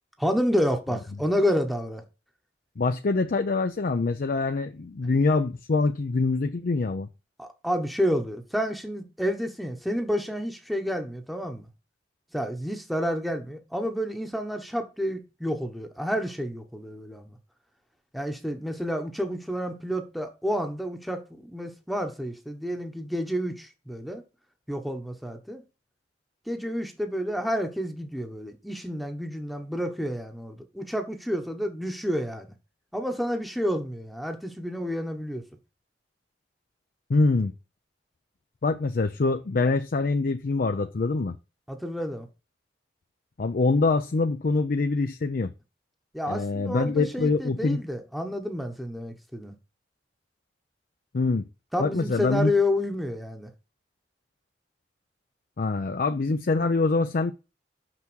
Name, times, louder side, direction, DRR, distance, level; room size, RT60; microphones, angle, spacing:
voice 1, 0.2-2.0 7.4-11.7 12.3-17.4 18.1-24.2 24.7-25.6 26.5-32.5 32.9-35.4 41.7-42.3 46.1-49.5 51.7-53.5, equal, ahead, 1.0 m, -29 dB
voice 2, 2.8-7.1 37.1-37.5 38.6-41.3 43.4-45.5 46.3-47.8 51.1-51.5 51.8-52.5 55.6-57.3, left 3 dB, 55° left, 0.5 m, -24 dB
6.0 x 5.9 x 6.2 m
head